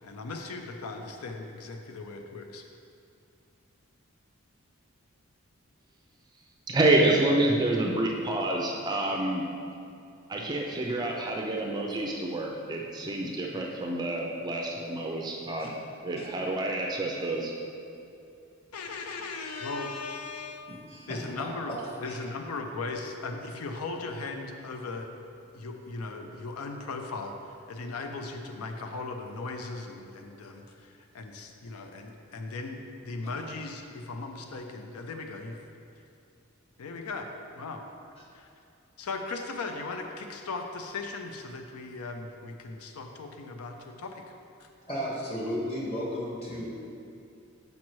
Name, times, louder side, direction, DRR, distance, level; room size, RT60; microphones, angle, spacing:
voice 1, 0.0-2.6 18.7-20.7 21.1-21.7 22.0-25.1 25.5-35.6 36.8-37.3 37.5-37.8 38.3-38.5 39.0-44.3 44.6-44.7, left 3 dB, 90° left, 4 dB, 0.5 m, -38 dB
voice 2, 6.7-9.4 10.3-15.7 16.0-17.5, right 2 dB, 20° right, -1 dB, 0.4 m, -28 dB
voice 3, 20.7-21.5 22.0-22.2 44.9-46.7, equal, 25° left, -6 dB, 1.4 m, -34 dB
7.2 x 5.2 x 3.1 m, 2.6 s
head